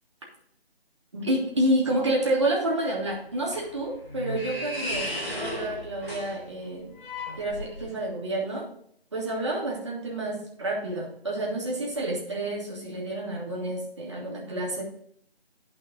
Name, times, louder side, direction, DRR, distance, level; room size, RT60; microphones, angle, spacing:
voice 1, 1.1-6.9 7.4-8.7 9.1-14.8, right 1 dB, 30° right, -2 dB, 1.7 m, -29 dB
sound 1, 3.1-8.1, left 1 dB, 60° left, 3.5 m, -35 dB
10.5 x 5.3 x 3.8 m, 0.66 s
figure-of-eight pair, 170°, 31 cm